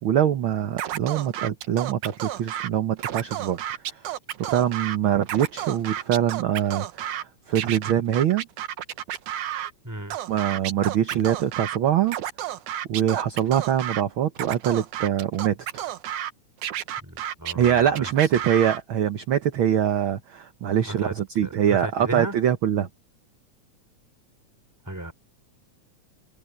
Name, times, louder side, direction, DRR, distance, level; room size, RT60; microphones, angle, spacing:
voice 1, 0.0-4.1 4.4-8.5 10.3-12.2 12.9-15.9 17.5-22.9, right 10 dB, 60° right, 1.4 m, -24 dB
Scratching (performance technique), 0.8-2.7 3.0-5.0 5.2-7.2 7.6-9.7 10.1-11.8 12.1-14.0 14.4-16.3 16.6-18.8, right 11 dB, 75° right, 2.5 m, -31 dB
voice 2, 9.8-10.2 17.0-18.1 20.9-21.1 21.4-22.3 24.8-25.1, right 1 dB, 5° right, 2.9 m, -34 dB
omnidirectional pair, 3.5 m